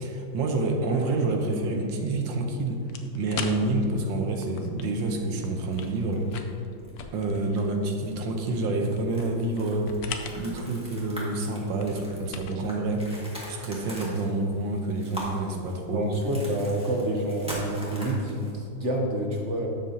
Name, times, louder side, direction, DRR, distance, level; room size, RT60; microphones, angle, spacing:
voice 1, 0.0-2.8 3.1-6.3 7.1-9.9 10.4-13.0 13.5-16.1, right 2 dB, 75° right, 3 dB, 1.5 m, -28 dB
sound 1, 0.8-2.2 3.3-4.1 4.4-4.5 4.9-6.4 6.8-7.0 7.3-7.6 8.0-8.1 8.5-18.5, equal, 5° right, 1.5 m, -42 dB
sound 2, 2.9-14.0, left 5 dB, 65° left, 1.0 m, -43 dB
voice 2, 15.9-19.7, right 1 dB, 50° right, 0 dB, 1.0 m, -28 dB
12.0 x 7.5 x 2.8 m, 2.7 s
omnidirectional pair, 2.1 m